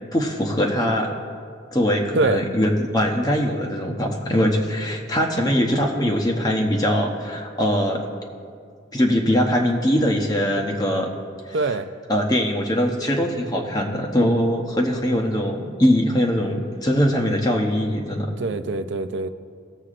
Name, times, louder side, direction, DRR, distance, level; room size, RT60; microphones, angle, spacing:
voice 1, 0.1-1.1 1.7-8.0 8.9-11.1 11.6-11.7 12.1-18.3, equal, 20° left, 0 dB, 0.8 m, -21 dB
voice 2, 11.5-11.9 18.4-19.3, right 3 dB, 65° right, 11 dB, 0.5 m, -23 dB
18.5 x 7.3 x 2.5 m, 2.2 s
head